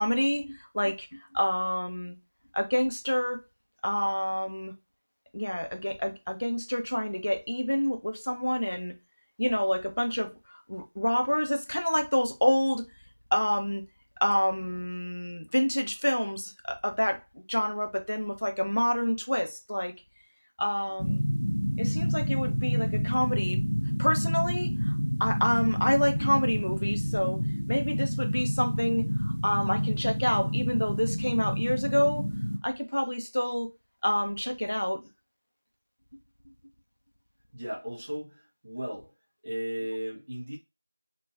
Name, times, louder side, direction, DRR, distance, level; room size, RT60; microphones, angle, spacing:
voice 1, 0.0-2.2 2.5-3.4 3.8-4.7 5.3-8.9 9.4-12.8 13.3-13.8 14.2-19.9 20.6-21.2 21.8-23.6 24.0-27.4 27.7-32.2 32.6-33.7 34.0-35.0, equal, 45° left, 0.5 m, -28 dB
sound 1, 21.0-32.6, equal, 90° left, 0.7 m, -29 dB
voice 2, 37.5-39.1 39.4-40.6, equal, 15° right, 0.5 m, -35 dB
2.9 x 2.2 x 2.3 m
figure-of-eight pair, 180°, 0 cm